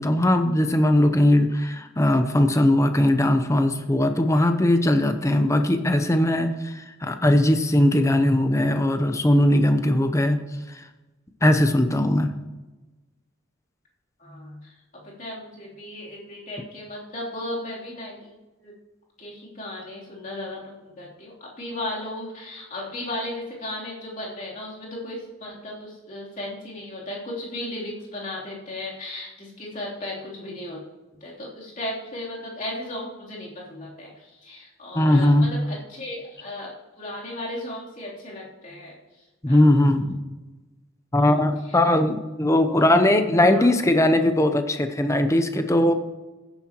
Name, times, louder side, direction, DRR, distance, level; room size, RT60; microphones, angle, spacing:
voice 1, 0.0-10.4 10.7-10.9 11.4-12.3 34.9-35.5 39.4-40.2 41.1-45.9, left 1 dB, 15° left, 7 dB, 0.7 m, -19 dB
voice 2, 14.2-14.8 15.0-18.7 19.2-30.8 31.2-36.7 37.0-40.0 41.2-41.4 41.7-41.8 42.7-42.9 43.4-43.7, left 1 dB, 40° left, -5 dB, 3.2 m, -36 dB
16.0 x 9.8 x 3.0 m, 1.1 s
head